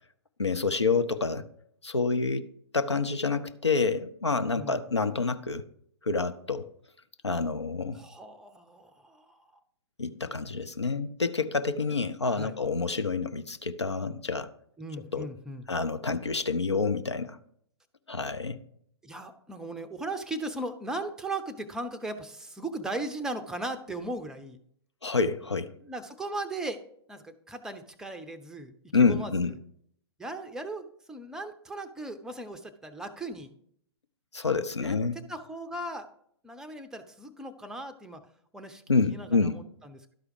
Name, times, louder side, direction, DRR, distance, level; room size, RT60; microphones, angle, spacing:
voice 1, 0.4-1.4 1.8-5.6 6.0-6.7 7.2-8.0 10.0-14.5 15.1-15.3 15.7-17.4 18.1-18.6 25.0-25.7 28.9-29.5 34.3-35.2 38.9-39.6, left 4 dB, 80° left, 11 dB, 0.6 m, -28 dB
voice 2, 7.9-9.4 12.3-12.6 14.8-15.7 19.0-24.6 25.8-26.8 27.1-29.3 30.2-33.5 34.8-35.0 35.3-36.1 36.4-38.2 38.5-38.8 39.1-40.0, right 2 dB, 5° right, 9 dB, 0.5 m, -37 dB
12.0 x 4.8 x 4.7 m, 0.67 s
figure-of-eight pair, 115°, 14 cm